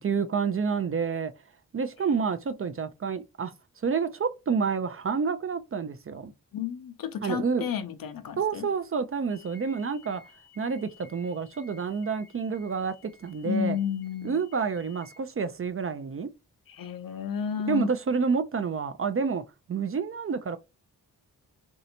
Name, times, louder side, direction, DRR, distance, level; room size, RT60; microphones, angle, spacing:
voice 1, 0.0-1.3 1.7-3.5 3.8-6.3 7.2-7.7 8.4-10.2 10.6-13.8 14.2-16.3 17.7-19.4 19.7-20.6, right 5 dB, 35° right, 0.4 m, -29 dB
voice 2, 6.5-8.7 13.4-14.4 16.7-17.9, left 7 dB, 60° left, 0.6 m, -32 dB
sound 1, 9.3-15.2, left 4 dB, 80° left, 1.0 m, -56 dB
3.2 x 2.7 x 2.7 m
cardioid pair, 50°, 40 cm